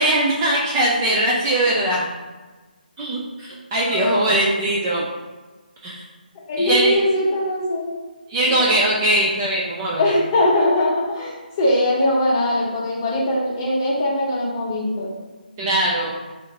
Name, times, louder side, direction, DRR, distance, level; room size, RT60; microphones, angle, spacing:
voice 1, 0.0-2.1 3.0-5.0 5.8-6.0 6.6-7.0 8.3-10.0 15.6-16.2, right 1 dB, 15° right, -4 dB, 0.3 m, -20 dB
voice 2, 3.8-4.3 6.5-8.0 8.5-8.8 10.0-15.1, left 1 dB, 20° left, -5 dB, 0.8 m, -21 dB
4.9 x 2.6 x 2.8 m, 1.3 s
figure-of-eight pair, 150°, 5 cm